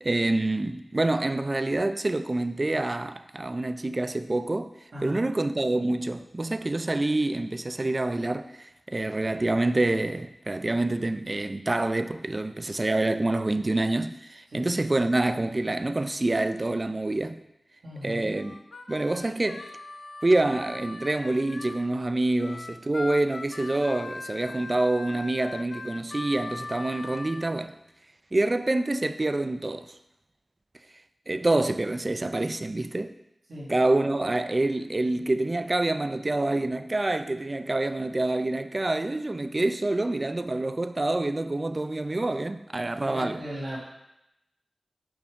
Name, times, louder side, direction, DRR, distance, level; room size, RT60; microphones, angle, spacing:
voice 1, 0.0-4.7 5.0-17.4 18.0-18.6 18.9-19.7 20.2-27.8 28.3-29.9 31.3-33.1 33.7-43.4, right 2 dB, 35° right, 0.3 m, -27 dB
voice 2, 17.8-18.3 33.5-33.7 42.8-43.8, equal, 90° right, 1.8 m, -37 dB
Harmonica, 18.3-21.8 22.4-27.5, left 3 dB, 80° left, 0.4 m, -40 dB
6.0 x 4.8 x 3.6 m
wide cardioid pair, 70°, 0 cm